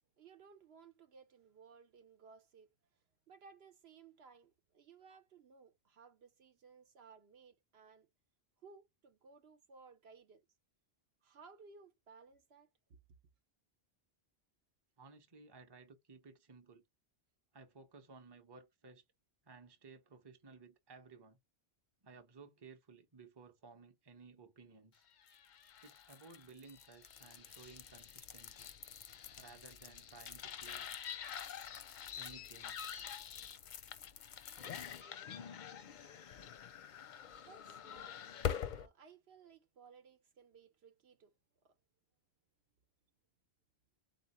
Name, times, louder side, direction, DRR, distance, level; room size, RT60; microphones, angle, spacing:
voice 1, 0.2-2.7 3.3-8.1 8.6-10.4 11.2-13.0 37.5-38.2 38.7-41.3 41.6-41.7, right 5 dB, 70° right, 1.0 m, -60 dB
voice 2, 15.0-16.8 17.5-19.0 19.4-21.4 22.0-25.0 25.8-28.7 29.4-30.9 32.1-32.8, right 4 dB, 25° right, 0.7 m, -57 dB
sound 1, 25.2-38.9, left 8 dB, 55° left, 0.6 m, -46 dB
4.2 x 2.9 x 4.2 m
omnidirectional pair, 1.1 m